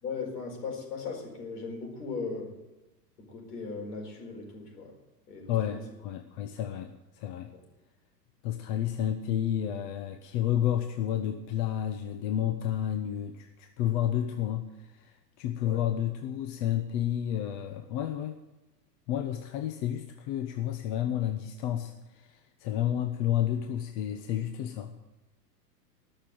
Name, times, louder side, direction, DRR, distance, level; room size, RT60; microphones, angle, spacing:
voice 1, 0.0-2.6 3.2-5.0 5.3-5.9 6.4-6.5 15.6-15.8, left 4 dB, 70° left, 3 dB, 4.7 m, -38 dB
voice 2, 5.5-7.5 8.4-18.4 19.1-24.9, left 11 dB, 45° left, 8 dB, 0.9 m, -31 dB
19.5 x 6.8 x 7.8 m, 1.0 s
hypercardioid pair, 125°, 49 cm